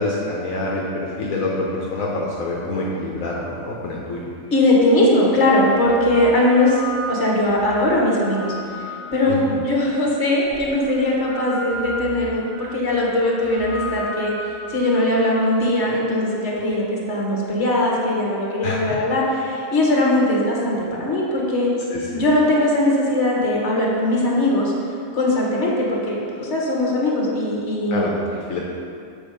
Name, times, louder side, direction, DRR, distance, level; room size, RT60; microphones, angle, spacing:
voice 1, 0.0-4.3 9.3-9.6 18.6-18.8 21.9-22.0 27.9-28.1 28.5-28.6, left 2 dB, 80° left, -4 dB, 1.3 m, -26 dB
sound 1, 4.4-4.5 5.4-9.7 10.4-15.1, left 1 dB, 80° right, 2.4 m, -35 dB
voice 2, 4.5-6.8 7.1-8.9 9.1-14.3 14.7-21.7 22.1-24.7 25.1-28.1, left 1 dB, 55° left, -3 dB, 1.6 m, -20 dB
7.3 x 5.1 x 4.9 m, 2.4 s
omnidirectional pair, 1.4 m